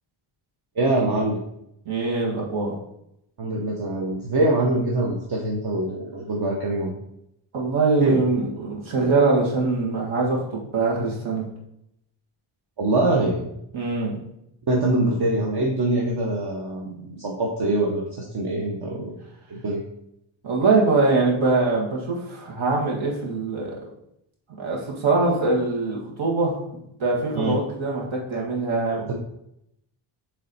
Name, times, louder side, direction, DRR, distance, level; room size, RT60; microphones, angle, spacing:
voice 1, 0.8-1.4 3.4-6.9 8.0-8.2 12.8-13.5 14.7-19.2 19.5-19.8 27.3-27.6 29.1-29.2, right 2 dB, 55° right, -2 dB, 0.9 m, -24 dB
voice 2, 1.9-2.7 7.5-11.5 13.7-14.2 20.4-23.7 24.6-26.6 27.0-29.1, right 3 dB, 75° right, -3 dB, 1.9 m, -23 dB
7.3 x 3.2 x 4.1 m, 0.78 s
wide cardioid pair, 170°, 48 cm